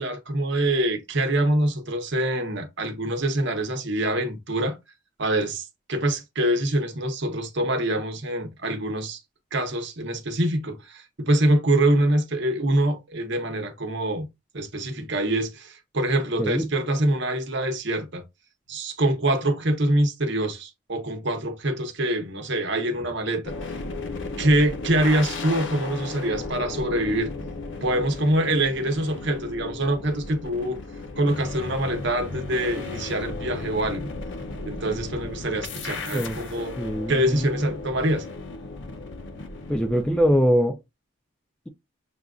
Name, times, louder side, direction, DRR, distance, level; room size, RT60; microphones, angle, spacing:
voice 1, 0.0-4.8 5.2-9.2 9.5-14.3 14.5-18.2 18.7-23.6 24.4-27.3 27.8-30.8 31.2-34.1 34.7-36.7 37.1-38.3, right 1 dB, 55° right, 0.9 m, -25 dB
sound 1, 23.4-40.4, left 3 dB, 55° left, 0.6 m, -35 dB
voice 2, 36.8-37.5 39.7-40.8, equal, 5° left, 0.3 m, -22 dB
6.7 x 2.5 x 2.4 m
head